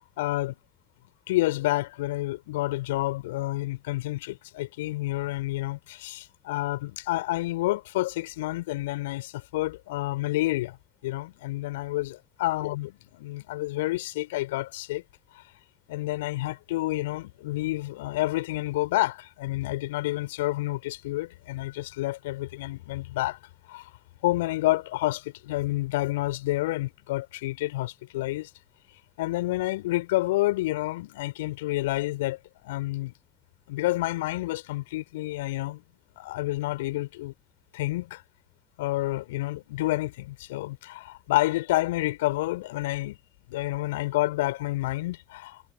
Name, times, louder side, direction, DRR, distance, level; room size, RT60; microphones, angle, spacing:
voice 1, 0.2-0.6 1.3-10.8 11.0-15.0 15.9-23.4 23.7-23.9 24.2-28.5 29.2-32.4 32.6-33.1 33.7-35.8 36.2-37.3 37.7-38.2 38.8-43.2 43.5-45.6, left 18 dB, 75° left, 5.0 m, -29 dB
figure-of-eight pair, 45°, 0 cm